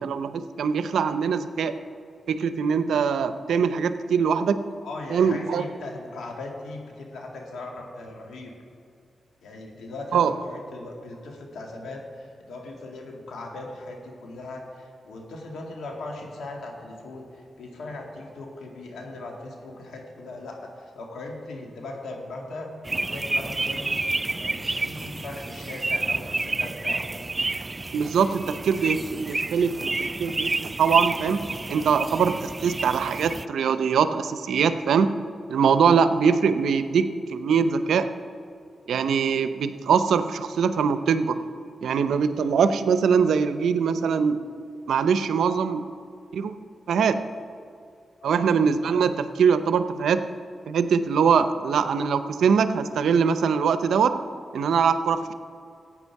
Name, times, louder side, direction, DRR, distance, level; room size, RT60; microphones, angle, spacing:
voice 1, 0.0-1.8 2.3-4.7 5.1-5.6 10.1-10.3 27.9-29.9 30.2-35.2 35.5-38.1 38.9-41.4 41.8-44.4 44.9-45.9 46.3-46.6 46.9-47.2 48.2-50.2 50.7-54.2 54.5-55.3, right 6 dB, 85° right, 11 dB, 0.6 m, -22 dB
voice 2, 4.8-8.5 9.4-27.0 48.2-48.4, left 2 dB, 80° left, 1 dB, 2.0 m, -39 dB
sound 1, 22.9-33.5, right 2 dB, 30° right, 0.3 m, -30 dB
15.0 x 8.9 x 4.7 m, 2.4 s
cardioid pair, 55°, 0 cm